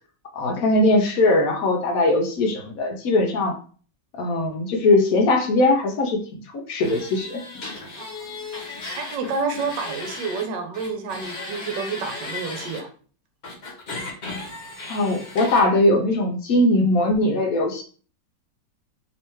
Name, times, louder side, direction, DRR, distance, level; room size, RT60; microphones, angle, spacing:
voice 1, 0.3-3.6 4.1-6.2 6.5-7.4 14.9-17.8, left 2 dB, 65° left, 3 dB, 0.9 m, -20 dB
sound 1, 6.8-10.5 10.7-12.8 13.4-15.7, left 3 dB, 45° left, 1.0 m, -35 dB
voice 2, 8.0-12.9, right 4 dB, 75° right, 4 dB, 1.3 m, -30 dB
3.2 x 3.1 x 3.0 m, 0.41 s
omnidirectional pair, 2.0 m